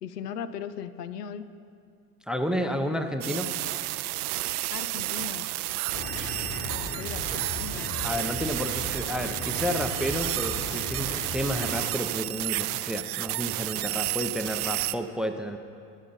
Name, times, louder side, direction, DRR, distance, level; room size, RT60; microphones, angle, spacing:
voice 1, 0.0-1.5 2.6-3.7 4.7-5.5 6.7-8.0, left 8 dB, 85° left, 13 dB, 0.6 m, -39 dB
voice 2, 2.3-3.5 8.0-15.6, equal, ahead, 7 dB, 0.6 m, -31 dB
sound 1, 3.2-14.9, right 17 dB, 75° right, 0.6 m, -31 dB
sound 2, 5.9-12.0, left 1 dB, 30° left, 1.8 m, -37 dB
21.5 x 7.3 x 4.1 m, 2.4 s
hypercardioid pair, 80°, 46 cm